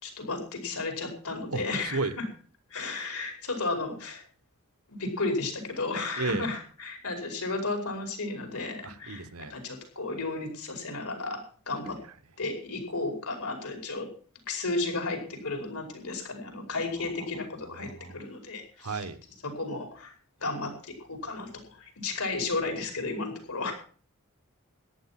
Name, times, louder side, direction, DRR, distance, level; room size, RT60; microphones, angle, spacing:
voice 1, 0.0-2.2 2.7-4.2 4.9-11.4 11.7-12.0 12.4-14.1 14.5-19.1 19.4-20.1 20.4-23.7, left 3 dB, 85° left, 4 dB, 5.3 m, -33 dB
voice 2, 1.5-2.2 6.2-6.5 8.8-9.5 17.7-18.1 18.8-19.2, right 3 dB, 80° right, 13 dB, 1.2 m, -33 dB
14.5 x 11.0 x 5.9 m, 0.42 s
head